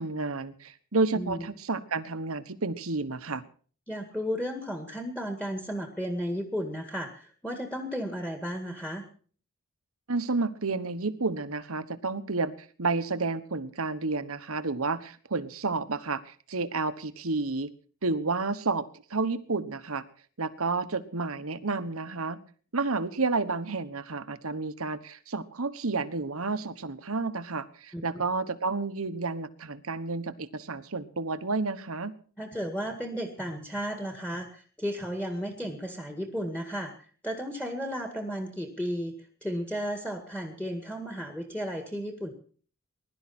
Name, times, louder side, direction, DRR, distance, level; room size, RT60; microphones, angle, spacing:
voice 1, 0.0-3.4 10.1-12.5 12.8-17.7 18.0-20.0 20.4-22.4 22.7-32.2, right 3 dB, 75° right, 12 dB, 1.2 m, -31 dB
voice 2, 1.1-1.4 3.9-9.1 27.9-28.0 32.4-39.1 39.4-42.3, equal, 5° left, 4 dB, 1.9 m, -34 dB
21.0 x 12.0 x 4.3 m, 0.43 s
head